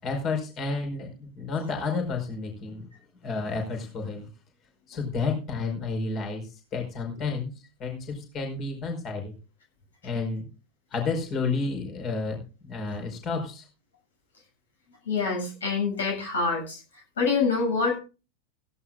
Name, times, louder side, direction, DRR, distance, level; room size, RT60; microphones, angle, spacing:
voice 1, 0.0-2.9 3.2-4.3 4.9-6.4 6.7-7.5 7.8-9.3 10.0-10.5 10.9-13.6, left 4 dB, 30° left, 3 dB, 4.9 m, -31 dB
voice 2, 15.1-16.8 17.2-18.0, left 4 dB, 65° left, 2 dB, 7.4 m, -26 dB
16.5 x 15.5 x 2.5 m, 0.33 s
figure-of-eight pair, 90°, 0 cm